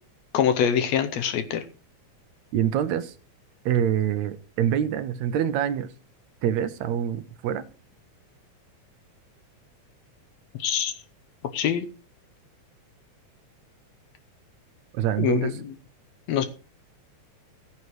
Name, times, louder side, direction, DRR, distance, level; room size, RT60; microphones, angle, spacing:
voice 1, 0.3-1.6 10.6-10.9 11.5-11.9 15.2-15.5 16.3-16.5, left 8 dB, 75° left, 1.9 m, -24 dB
voice 2, 2.5-3.1 3.7-5.9 6.4-7.6 14.9-15.6, right 10 dB, 75° right, 1.9 m, -25 dB
16.5 x 9.5 x 3.1 m
omnidirectional pair, 3.4 m